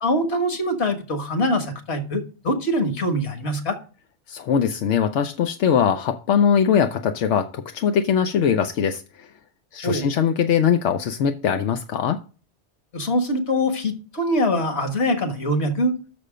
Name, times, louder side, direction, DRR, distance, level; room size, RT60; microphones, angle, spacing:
voice 1, 0.0-3.8 9.8-10.1 12.9-16.0, equal, 65° left, 1.8 m, -23 dB
voice 2, 4.3-9.3 9.7-12.2, left 7 dB, 90° left, 1.0 m, -21 dB
6.6 x 6.2 x 4.9 m
omnidirectional pair, 1.2 m